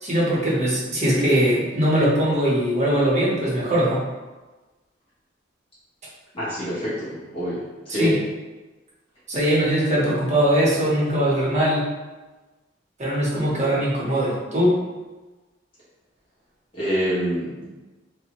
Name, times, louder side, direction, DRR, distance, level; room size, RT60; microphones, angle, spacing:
voice 1, 0.0-4.0 7.9-8.2 9.3-11.9 13.0-14.8, equal, 40° right, -6 dB, 0.8 m, -21 dB
voice 2, 6.3-8.1 16.7-17.7, equal, 30° left, -11 dB, 0.9 m, -26 dB
2.5 x 2.0 x 2.9 m, 1.2 s
head